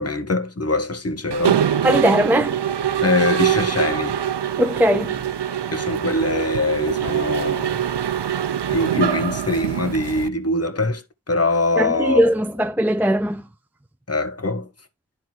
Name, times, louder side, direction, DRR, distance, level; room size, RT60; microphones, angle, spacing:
voice 1, 0.0-1.6 3.0-4.2 5.7-7.8 8.7-12.3 14.1-14.7, left 2 dB, 30° left, 1.6 m, -23 dB
Mechanisms, 1.3-10.3, right 9 dB, 55° right, 0.9 m, -23 dB
voice 2, 1.8-2.6 4.6-5.2 11.8-13.4, equal, 5° right, 0.6 m, -19 dB
11.0 x 3.9 x 4.6 m
cardioid pair, 45°, 48 cm